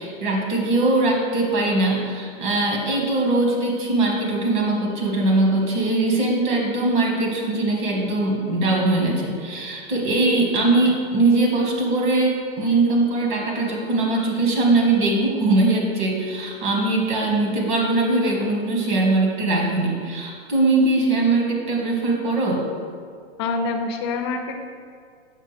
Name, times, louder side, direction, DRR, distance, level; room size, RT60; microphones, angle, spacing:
voice 1, 0.0-22.6, right 2 dB, 50° right, -1 dB, 1.4 m, -21 dB
voice 2, 23.4-24.6, left 4 dB, 25° left, 4 dB, 0.4 m, -26 dB
6.6 x 5.5 x 3.2 m, 2.1 s
hypercardioid pair, 150°, 31 cm